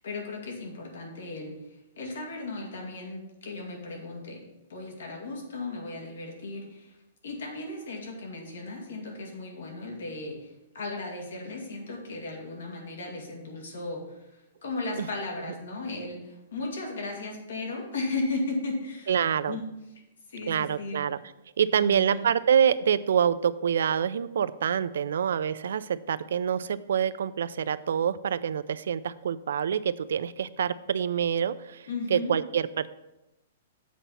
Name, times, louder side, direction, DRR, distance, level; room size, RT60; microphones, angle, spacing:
voice 1, 0.0-7.0 7.2-19.2 19.5-19.7 20.3-21.0 21.7-22.3 31.9-32.4, left 2 dB, 80° left, 1 dB, 2.1 m, -36 dB
voice 2, 19.1-19.6 20.5-21.2 21.6-32.9, right 8 dB, 70° right, 16 dB, 0.3 m, -26 dB
7.4 x 4.0 x 5.6 m, 0.95 s
hypercardioid pair, 175°, 0 cm